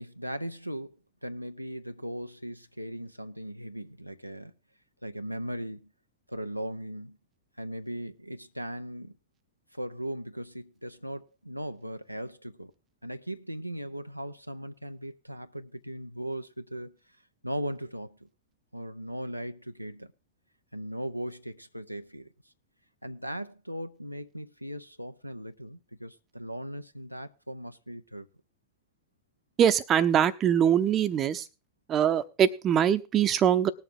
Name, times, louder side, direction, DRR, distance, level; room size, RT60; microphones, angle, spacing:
voice 1, 0.0-4.5 5.0-5.9 6.3-7.2 7.6-9.2 9.7-12.7 13.0-16.9 17.4-18.3 18.7-20.1 20.7-22.3 23.0-28.3, equal, 90° right, 0.5 m, -38 dB
voice 2, 29.6-31.5 31.9-33.7, right 9 dB, 30° right, 0.8 m, -23 dB
19.5 x 7.1 x 3.7 m
figure-of-eight pair, 90°, 0 cm